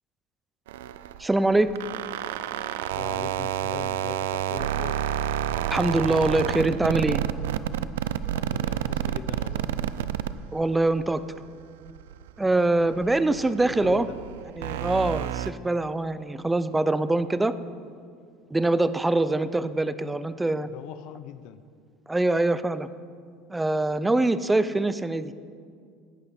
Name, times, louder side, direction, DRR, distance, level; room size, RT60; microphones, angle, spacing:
sound 1, 0.7-11.3 11.6-15.5, right 11 dB, 90° right, 0.4 m, -30 dB
voice 1, 1.2-1.7 5.7-7.2 10.5-11.2 12.4-14.1 14.6-17.5 18.5-20.7 22.1-22.9 23.5-25.3, right 2 dB, 10° right, 14 dB, 0.5 m, -24 dB
voice 2, 2.9-5.0 8.3-9.7 13.3-14.2 20.5-21.6, left 10 dB, 65° left, 12 dB, 0.6 m, -40 dB
16.0 x 9.5 x 4.3 m, 2.2 s
supercardioid pair, 110°, 0 cm